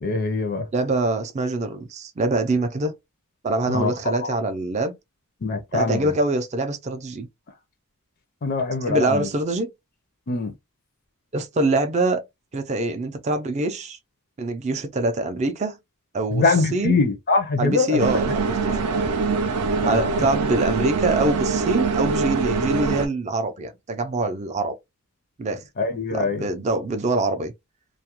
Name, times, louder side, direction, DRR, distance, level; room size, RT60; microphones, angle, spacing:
voice 1, 0.0-0.7 3.7-4.3 5.4-6.0 8.4-9.3 10.3-10.5 16.3-18.0 18.7-19.1 19.8-20.3 25.8-26.4, left 3 dB, 45° left, 0.4 m, -23 dB
voice 2, 0.7-2.9 3.4-4.9 5.7-7.3 8.9-9.7 11.3-12.2 12.5-14.0 14.4-15.8 16.1-16.4 16.7-17.0 17.6-19.0 19.8-24.7 25.4-25.6 26.1-27.5, right 2 dB, 30° right, 0.4 m, -24 dB
sound 1, 18.0-23.1, right 4 dB, 85° right, 0.5 m, -23 dB
2.3 x 2.0 x 2.8 m
head